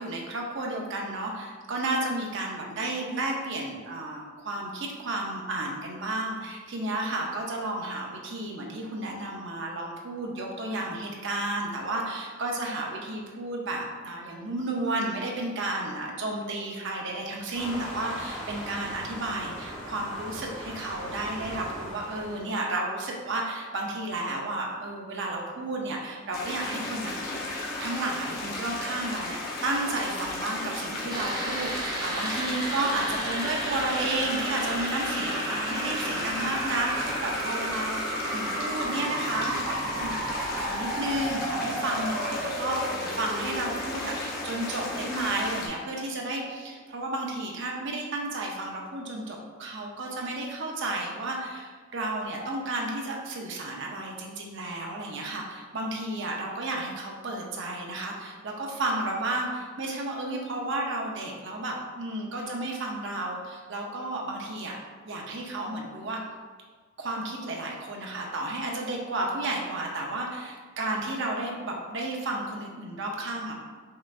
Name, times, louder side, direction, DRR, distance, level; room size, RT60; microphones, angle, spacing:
voice 1, 0.0-27.3 27.8-51.7 51.9-64.8 65.0-66.2 67.0-73.5, right 2 dB, 60° right, -1 dB, 0.6 m, -32 dB
Waves surf, 17.5-22.6, equal, ahead, 1.0 m, -39 dB
sound 1, 26.3-45.7, left 2 dB, 45° left, 0.7 m, -35 dB
sound 2, 31.1-45.7 46.0-46.1, right 1 dB, 20° right, 0.5 m, -34 dB
5.4 x 2.5 x 2.4 m, 1.5 s
head